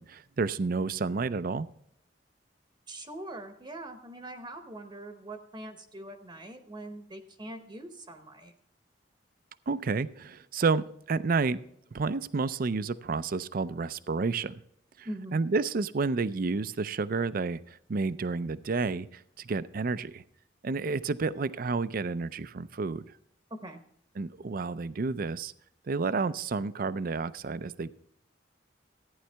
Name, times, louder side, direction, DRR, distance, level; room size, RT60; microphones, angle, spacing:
voice 1, 0.0-1.7 9.7-11.6 11.9-14.5 15.0-20.2 20.6-23.0 24.2-25.5 25.9-27.9, right 4 dB, 50° right, 15 dB, 0.5 m, -30 dB
voice 2, 2.9-8.5 15.0-15.4 23.5-23.8, right 1 dB, 25° right, 6 dB, 0.9 m, -42 dB
14.5 x 9.8 x 3.4 m, 0.69 s
head